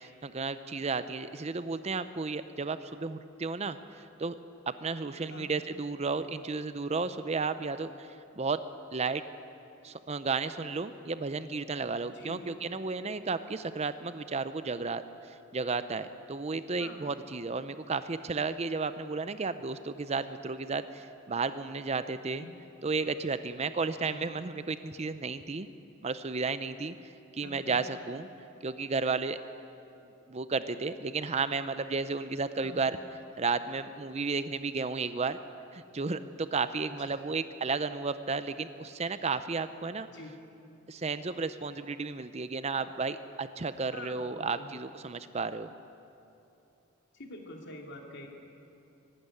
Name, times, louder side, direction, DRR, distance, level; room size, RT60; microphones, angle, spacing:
voice 1, 0.0-4.3 4.7-8.1 8.4-8.6 8.9-9.2 9.8-22.4 22.8-25.7 26.0-26.9 27.3-28.3 28.6-29.4 30.3-32.9 33.4-35.4 35.7-40.1 40.9-45.7, right 4 dB, 30° right, 12 dB, 0.5 m, -33 dB
voice 2, 27.4-27.8 32.6-32.8 36.8-37.2 40.1-40.3 43.9-44.7 47.1-48.3, left 2 dB, 55° left, 2 dB, 2.7 m, -46 dB
23.5 x 12.0 x 9.9 m, 2.8 s
head